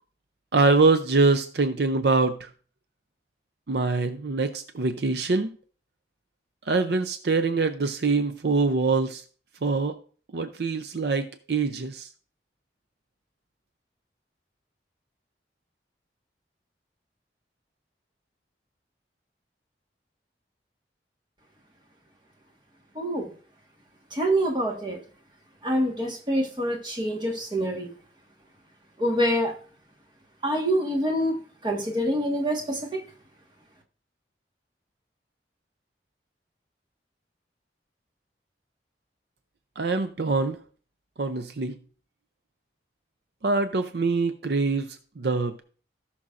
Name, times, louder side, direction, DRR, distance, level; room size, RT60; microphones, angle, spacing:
voice 1, 0.5-2.5 3.7-5.5 6.7-9.2 9.6-9.9 10.3-12.1 39.8-40.6 41.2-41.8 43.4-45.6, right 3 dB, 65° right, 9 dB, 0.6 m, -24 dB
voice 2, 22.9-23.3 24.1-25.0 25.6-27.9 29.0-29.5 30.4-31.4 31.6-33.0, equal, 25° right, 1 dB, 1.5 m, -26 dB
17.0 x 6.1 x 2.5 m, 0.42 s
head